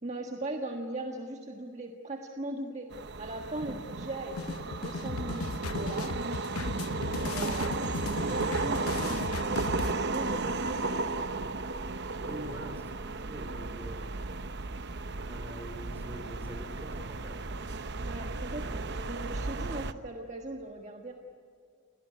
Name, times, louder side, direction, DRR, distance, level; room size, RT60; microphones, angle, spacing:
voice 1, 0.0-2.9 3.2-6.1 7.1-11.3 12.3-12.6 13.9-14.0 18.0-21.1, right 1 dB, 30° right, 2 dB, 1.6 m, -39 dB
sound 1, 2.9-19.9, right 3 dB, 50° right, 0.9 m, -34 dB
sound 2, 4.4-9.9, left 3 dB, 75° left, 0.9 m, -36 dB
voice 2, 12.2-14.1 15.2-17.5 18.6-18.9, right 1 dB, 10° right, 3 dB, 4.0 m, -45 dB
30.0 x 18.5 x 9.9 m, 2.4 s
head